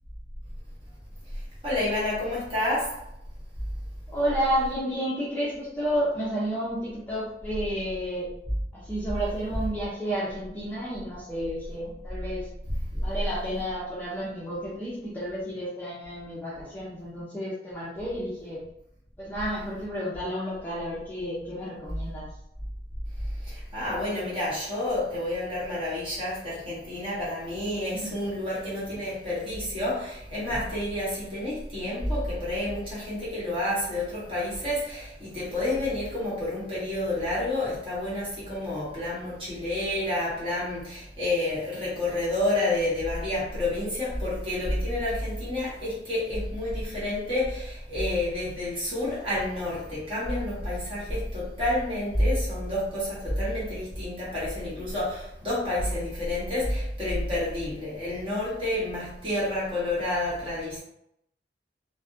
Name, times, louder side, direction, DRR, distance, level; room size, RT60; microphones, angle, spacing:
voice 1, 1.3-3.0 12.7-13.1 23.2-60.8, left 1 dB, 30° right, 1.2 m, -29 dB
voice 2, 4.1-8.3 8.7-12.5 13.0-18.6 19.2-22.3 27.9-28.1, equal, 10° left, 0.4 m, -31 dB
2.5 x 2.1 x 2.5 m
head